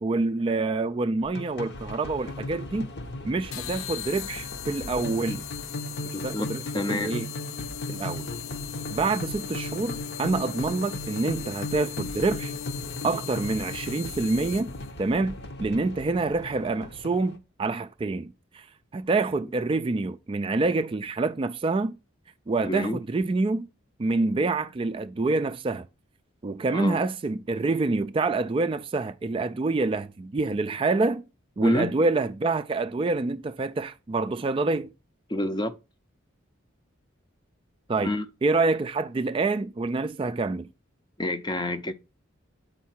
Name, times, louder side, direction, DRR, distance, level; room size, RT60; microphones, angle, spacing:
voice 1, 0.0-2.9 3.2-5.4 6.0-6.6 6.9-7.3 7.9-8.3 8.9-12.5 13.0-14.7 15.0-18.7 18.9-22.0 22.5-23.7 24.0-25.9 26.4-31.2 31.6-34.9 37.9-38.2 38.4-40.7, right 3 dB, 25° right, 0.3 m, -27 dB
sound 1, 1.2-17.4, left 2 dB, 55° left, 0.9 m, -37 dB
sound 2, 3.5-14.9, left 14 dB, 80° left, 0.5 m, -40 dB
voice 2, 6.1-7.1 22.6-23.0 26.7-27.0 31.6-31.9 35.3-35.8 38.0-38.3 41.2-41.9, left 1 dB, 20° left, 0.6 m, -28 dB
8.1 x 4.7 x 4.3 m
head